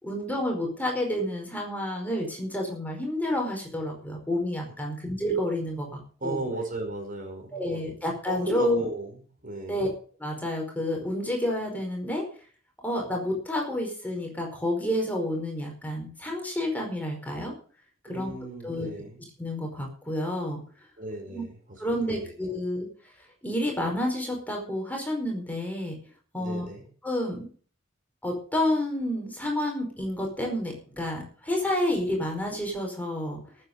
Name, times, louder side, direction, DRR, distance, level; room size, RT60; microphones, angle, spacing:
voice 1, 0.0-6.4 7.5-8.8 9.7-9.9 10.2-12.2 12.8-17.5 18.1-18.3 18.6-18.9 19.4-20.6 21.3-21.4 21.8-22.9 23.4-26.0 26.3-26.7 27.0-27.5 28.2-33.4, left 1 dB, 10° left, 1 dB, 4.8 m, -29 dB
voice 2, 6.2-7.8 8.3-9.9 18.1-19.2 21.0-22.3 26.3-26.8, right 2 dB, 45° right, 3 dB, 5.0 m, -35 dB
18.5 x 8.4 x 5.3 m, 0.43 s
head